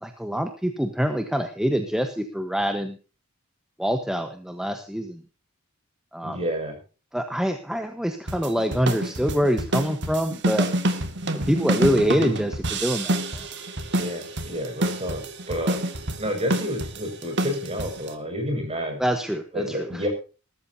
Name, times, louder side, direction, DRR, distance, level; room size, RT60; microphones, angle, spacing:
voice 1, 0.0-3.0 3.8-5.2 6.1-6.4 7.1-10.7 11.3-13.5 19.0-20.0, equal, 5° right, 6 dB, 1.2 m, -25 dB
voice 2, 6.2-6.8 13.9-15.8 16.2-19.0 19.5-20.1, equal, 30° right, 4 dB, 6.3 m, -30 dB
sound 1, 8.3-18.1, right 1 dB, 55° right, 2.2 m, -27 dB
20.0 x 13.5 x 2.8 m, 0.34 s
head